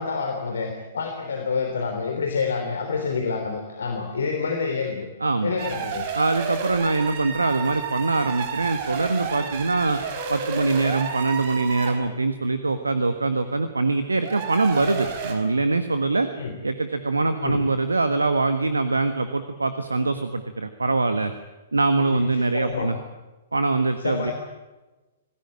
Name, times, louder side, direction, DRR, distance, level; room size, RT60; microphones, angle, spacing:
voice 1, 0.0-5.1 5.4-6.1 16.4-16.5 17.4-17.6 22.1-22.2 22.5-22.9 24.0-24.3, left 5 dB, 65° left, 4 dB, 3.4 m, -27 dB
voice 2, 5.2-5.5 6.1-10.0 10.3-16.3 16.6-21.3 21.7-23.0 23.5-24.3, right 3 dB, 75° right, 9 dB, 1.5 m, -23 dB
sound 1, 5.6-12.1 14.1-15.3, right 6 dB, 40° right, 4.7 m, -31 dB
26.5 x 18.5 x 8.9 m, 1.1 s
figure-of-eight pair, 110°, 0 cm